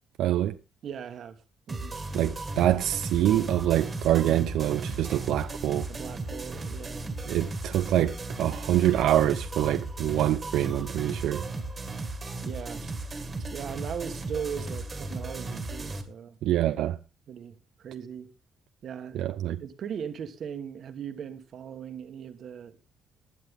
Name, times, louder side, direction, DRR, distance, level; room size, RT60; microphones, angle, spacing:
voice 1, 0.2-0.6 2.1-5.9 7.3-11.4 16.4-17.0 19.1-19.6, right 12 dB, 80° right, 0.7 m, -25 dB
voice 2, 0.8-1.4 1.7-2.0 5.9-7.1 12.4-12.9 13.4-16.4 17.3-18.3 18.8-19.2 19.6-22.8, right 7 dB, 45° right, 1.4 m, -38 dB
sound 1, 1.7-16.0, right 2 dB, 20° right, 1.8 m, -35 dB
16.0 x 11.0 x 3.6 m
cardioid pair, 170°, 0 cm